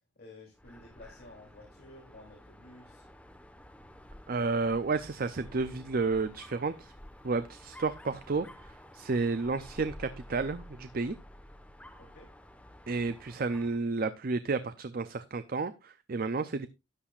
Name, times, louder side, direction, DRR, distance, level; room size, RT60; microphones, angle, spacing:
voice 1, 0.1-3.1 12.0-12.3, left 2 dB, 55° left, -1 dB, 3.2 m, -52 dB
Dog, 0.5-13.8, left 1 dB, 5° left, 1.2 m, -51 dB
voice 2, 4.3-6.9 7.2-11.2 12.9-16.7, right 4 dB, 50° right, 12 dB, 0.6 m, -31 dB
13.0 x 10.0 x 2.4 m, 0.25 s
head